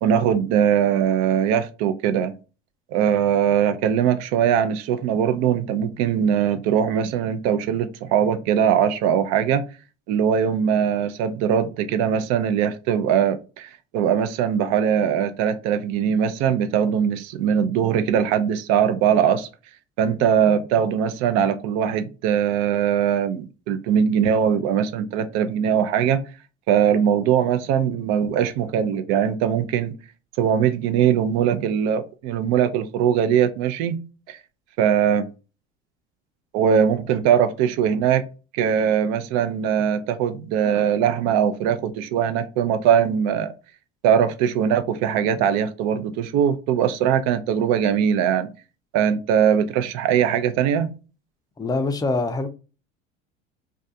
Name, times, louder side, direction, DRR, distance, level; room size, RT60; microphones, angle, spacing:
voice 1, 0.0-2.3 2.9-9.6 10.1-19.5 20.0-26.2 26.7-29.9 30.4-34.0 34.3-34.4 34.8-35.3 36.5-38.3 38.5-43.5 44.0-48.5 48.9-50.9, right 8 dB, 65° right, 0.5 m, -21 dB
voice 2, 51.6-52.5, left 3 dB, 15° left, 0.4 m, -24 dB
2.4 x 2.3 x 2.6 m
supercardioid pair, 95°, 29 cm